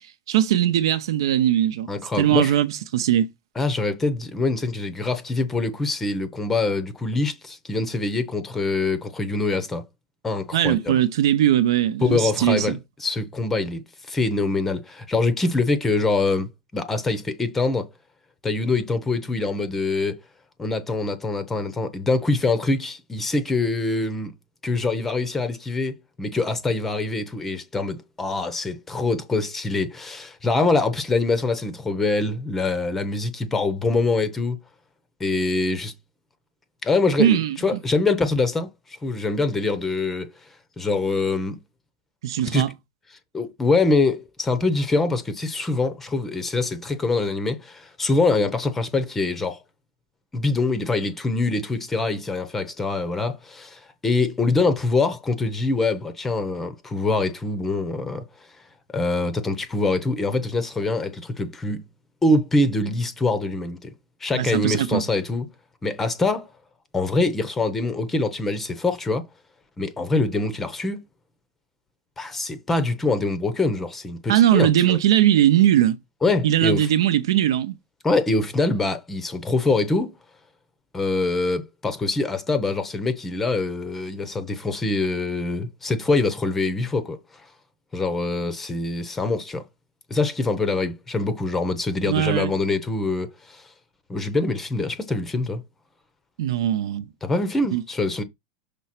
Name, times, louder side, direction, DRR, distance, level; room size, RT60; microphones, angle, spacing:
voice 1, 0.3-1.9 2.2-3.3 10.5-12.8 37.2-37.8 42.2-42.7 64.3-65.0 74.3-76.0 76.4-77.7 92.0-92.5 96.4-97.0 97.7-97.8, right 11 dB, 75° right, 0.9 m, -20 dB
voice 2, 1.9-2.5 3.6-9.8 10.2-11.0 12.0-17.9 18.4-20.2 20.6-24.3 24.6-34.6 35.2-35.9 36.8-40.3 40.8-41.6 42.4-42.7 43.3-49.6 50.3-58.2 58.9-61.8 62.2-63.9 64.2-65.5 65.8-66.5 66.9-69.3 69.8-71.0 72.2-75.0 76.2-76.9 78.0-80.1 80.9-87.5 87.9-89.6 90.1-93.7 94.1-95.6 97.2-98.2, left 3 dB, 10° left, 0.7 m, -24 dB
6.2 x 3.3 x 5.9 m
supercardioid pair, 175°, 2 cm